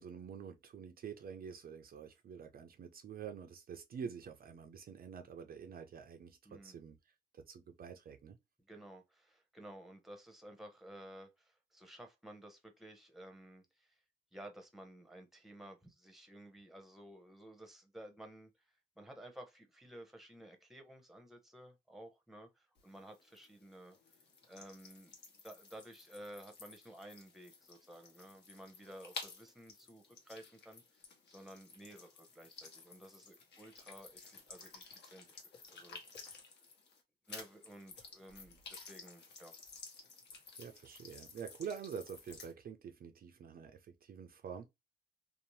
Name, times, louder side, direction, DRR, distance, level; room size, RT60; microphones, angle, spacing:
voice 1, 0.0-7.0 7.3-8.4 40.6-44.7, right 7 dB, 50° right, 0.5 m, -47 dB
voice 2, 6.4-6.8 8.7-14.0 14.3-18.5 19.0-24.0 24.5-25.2 25.4-30.8 31.3-36.4 37.3-39.5, right 1 dB, ahead, 0.8 m, -54 dB
sound 1, 22.8-37.0 37.3-42.5, left 4 dB, 60° left, 1.0 m, -54 dB
2.7 x 2.0 x 3.0 m
cardioid pair, 90°, 20 cm